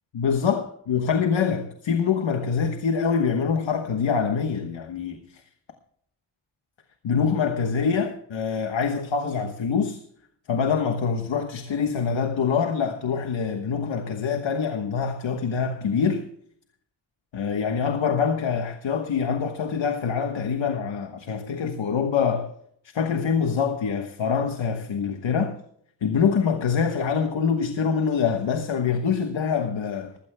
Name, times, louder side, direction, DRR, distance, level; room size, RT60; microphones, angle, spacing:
voice 1, 0.1-5.4 7.0-10.0 10.5-16.3 17.3-22.5 22.9-25.6 26.0-30.1, left 6 dB, 90° left, 1.3 m, -25 dB
20.0 x 15.5 x 2.2 m
wide cardioid pair, 80°, 44 cm